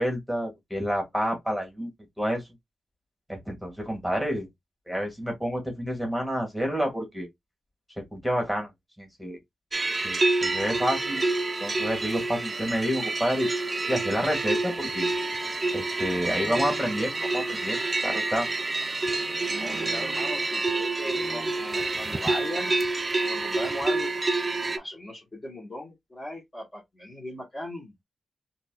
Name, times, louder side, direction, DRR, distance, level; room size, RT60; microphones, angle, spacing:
voice 1, 0.0-1.9 2.2-2.5 3.3-4.5 4.9-7.3 8.0-8.7 9.0-9.4 10.0-11.2 11.6-15.1 15.7-18.5, equal, ahead, 1.9 m, -29 dB
sound 1, 9.7-24.8, right 2 dB, 30° right, 0.4 m, -28 dB
voice 2, 19.6-22.7 23.2-24.1 24.8-27.9, left 1 dB, 30° left, 1.6 m, -38 dB
3.9 x 2.7 x 2.3 m
cardioid pair, 70°, 0 cm